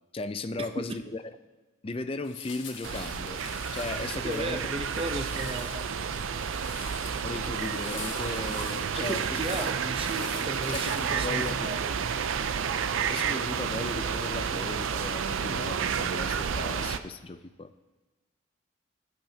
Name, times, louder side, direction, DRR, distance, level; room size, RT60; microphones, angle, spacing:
voice 1, 0.1-1.4 1.8-3.4 3.7-4.6 7.2-9.6 10.7-11.7 13.1-17.7, left 2 dB, 30° left, 11 dB, 0.4 m, -36 dB
sound 1, 2.2-11.5, left 6 dB, 75° left, 1.5 m, -45 dB
sound 2, 2.8-17.0, right 6 dB, 90° right, 0.5 m, -31 dB
voice 2, 4.2-5.9 9.0-11.8, right 2 dB, 30° right, 7 dB, 0.7 m, -35 dB
16.0 x 8.9 x 2.8 m, 1.2 s
head